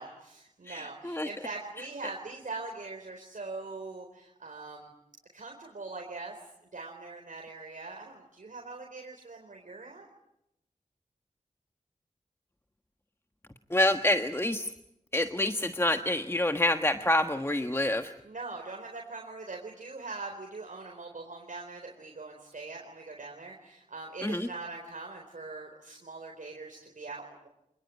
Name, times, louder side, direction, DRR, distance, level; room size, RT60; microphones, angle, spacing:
voice 1, 0.0-4.9 5.3-6.3 6.7-10.1 18.2-27.5, right 3 dB, 70° right, 1 dB, 4.3 m, -42 dB
voice 2, 0.7-1.3 13.7-14.7 15.1-18.1 24.2-24.5, left 1 dB, 20° left, 6 dB, 1.4 m, -27 dB
27.5 x 21.0 x 9.4 m, 0.84 s
wide cardioid pair, 55°, 14 cm